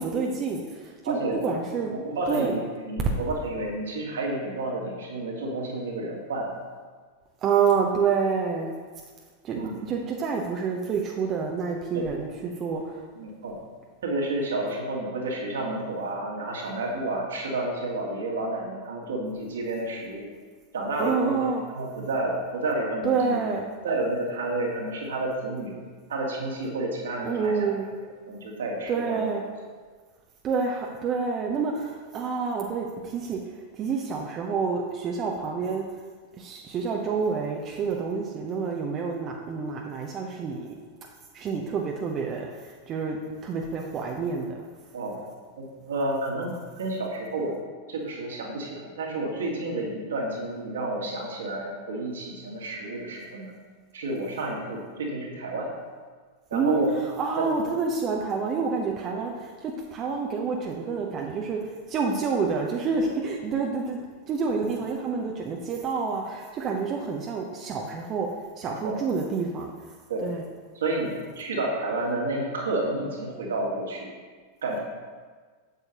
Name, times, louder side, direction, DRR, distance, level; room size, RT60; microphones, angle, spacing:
voice 1, 0.0-1.9 2.3-2.6 3.0-3.1 7.4-8.7 9.4-13.0 21.0-21.6 23.0-23.7 27.2-27.9 28.9-29.4 30.4-35.9 36.3-40.7 41.3-43.2 43.4-44.6 56.5-68.3 68.6-70.4, right 5 dB, 30° right, 0 dB, 0.8 m, -28 dB
voice 2, 1.1-1.4 1.9-6.5 9.5-9.8 11.9-12.1 13.2-13.6 14.0-20.3 20.7-23.4 23.8-25.7 26.1-27.7 28.3-29.2 44.9-45.2 45.6-47.6 47.9-53.5 53.9-55.7 56.5-56.9 57.4-57.5 68.6-68.9 70.1-70.2 70.8-74.1 74.6-74.8, right 2 dB, 65° right, -2 dB, 1.8 m, -30 dB
8.3 x 8.1 x 2.9 m, 1.5 s
figure-of-eight pair, 90°, 0 cm